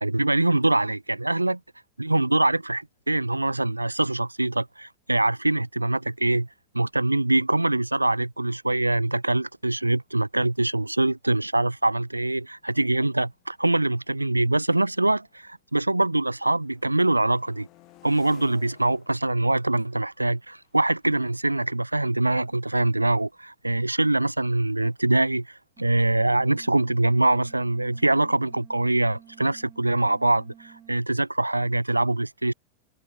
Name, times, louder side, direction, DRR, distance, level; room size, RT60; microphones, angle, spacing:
voice 1, 0.0-1.6 2.0-6.5 6.7-17.7 18.0-32.5, right 2 dB, 85° right, 0.5 m, -24 dB
sound 1, 10.7-10.9 11.6-15.6 15.9-22.6, left 19 dB, 40° left, 6.4 m, -59 dB
sound 2, 25.8-31.0, right 9 dB, 25° right, 2.8 m, -52 dB
figure-of-eight pair, 90°, 0 cm